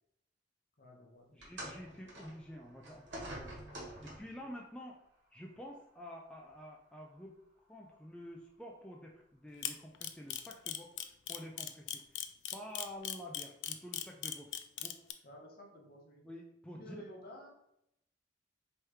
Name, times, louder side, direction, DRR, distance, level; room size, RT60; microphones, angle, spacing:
voice 1, 0.8-1.5 4.3-4.5 15.2-16.3 16.7-17.5, equal, 55° left, 0 dB, 1.0 m, -53 dB
voice 2, 1.3-3.5 4.0-5.0 5.3-12.2 12.5-14.5 14.8-15.0 16.2-17.1, equal, 5° left, -1 dB, 0.4 m, -49 dB
sound 1, 1.4-4.5 5.4-5.6 6.5-6.6, right 1 dB, 75° right, 1.4 m, -47 dB
Camera, 9.6-15.1, left 11 dB, 85° left, 0.4 m, -38 dB
3.2 x 3.0 x 4.7 m, 0.78 s
head